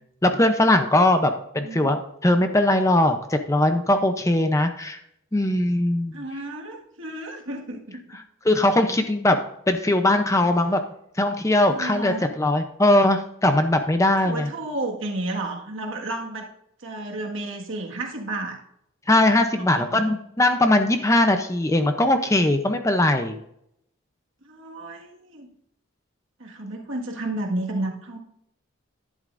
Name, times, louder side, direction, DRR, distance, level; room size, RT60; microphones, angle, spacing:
voice 1, 0.2-5.0 5.3-6.2 8.4-9.4 9.7-10.8 11.2-14.5 19.1-23.4, left 1 dB, 15° left, 7 dB, 0.6 m, -20 dB
voice 2, 6.1-8.2 11.7-12.3 14.2-16.5 16.8-18.6 19.6-20.0 24.4-25.5 26.4-28.2, right 2 dB, 70° right, 0 dB, 1.8 m, -32 dB
11.5 x 11.0 x 2.6 m, 0.75 s
head